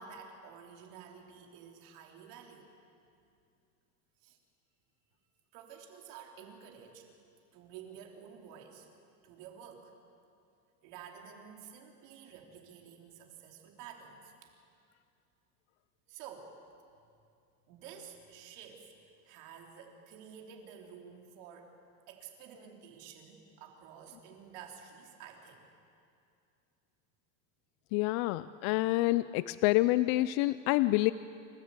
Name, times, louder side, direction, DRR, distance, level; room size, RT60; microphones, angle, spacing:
voice 1, 0.0-2.8 4.2-4.4 5.5-7.1 7.5-8.9 9.2-10.0 10.8-14.5 16.1-16.6 17.7-18.9 19.2-21.8 22.1-25.6, right 7 dB, 75° right, 2 dB, 3.3 m, -51 dB
voice 2, 27.9-31.1, left 18 dB, 65° left, 15 dB, 0.5 m, -27 dB
28.0 x 13.5 x 8.3 m, 2.5 s
cardioid pair, 155°, 41 cm